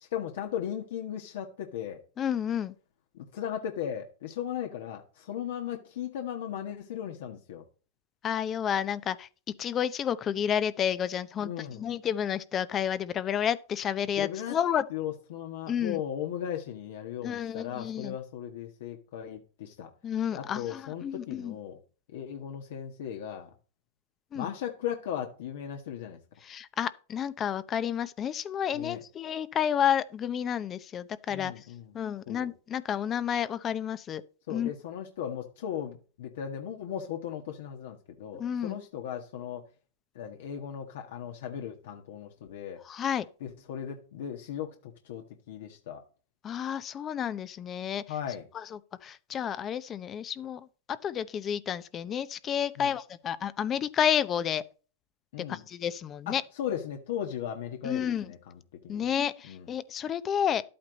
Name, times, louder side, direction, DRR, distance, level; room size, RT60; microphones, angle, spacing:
voice 1, 0.0-2.0 3.1-7.6 11.4-11.8 14.2-14.6 14.9-19.9 20.3-21.8 22.1-23.5 24.3-26.2 28.7-29.0 31.3-31.9 32.3-32.5 34.5-39.6 40.1-42.8 43.4-46.0 48.1-48.4 52.8-52.9 55.3-55.6 56.3-59.1 59.4-59.7, left 9 dB, 65° left, 1.6 m, -37 dB
voice 2, 2.2-2.7 8.2-9.3 9.6-14.8 15.7-16.0 17.2-18.2 20.0-21.6 24.3-24.5 26.4-31.5 31.9-34.2 34.5-34.7 38.4-38.8 42.8-43.3 46.4-48.0 48.5-48.6 49.0-50.6 51.0-54.6 55.5-56.4 57.8-58.3 58.9-60.6, left 9 dB, 25° left, 0.7 m, -30 dB
11.5 x 8.7 x 4.0 m
hypercardioid pair, 135°, 0 cm